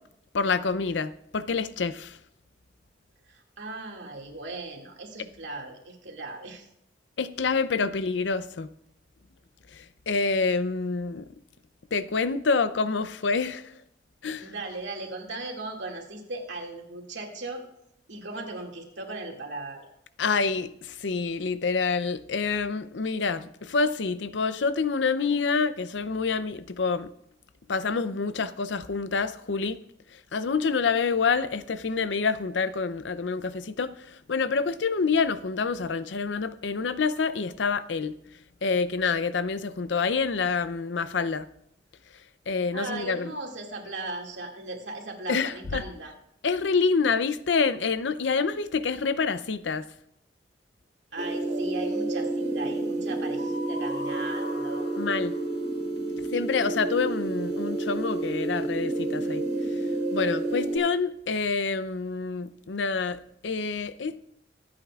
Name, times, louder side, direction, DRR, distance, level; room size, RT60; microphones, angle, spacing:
voice 1, 0.3-2.2 7.2-8.7 10.1-11.2 11.9-13.7 14.2-14.5 20.2-27.1 27.7-29.8 30.3-38.1 38.6-41.4 42.5-43.3 45.3-45.8 46.4-49.8 55.0-55.3 56.3-59.4 60.1-64.2, left 4 dB, 90° left, 0.6 m, -27 dB
voice 2, 3.3-6.7 14.4-17.6 18.1-19.9 42.7-46.1 51.1-54.8, right 2 dB, 85° right, 2.3 m, -37 dB
sound 1, 51.2-60.8, right 2 dB, 50° right, 3.6 m, -29 dB
24.5 x 8.7 x 2.4 m
head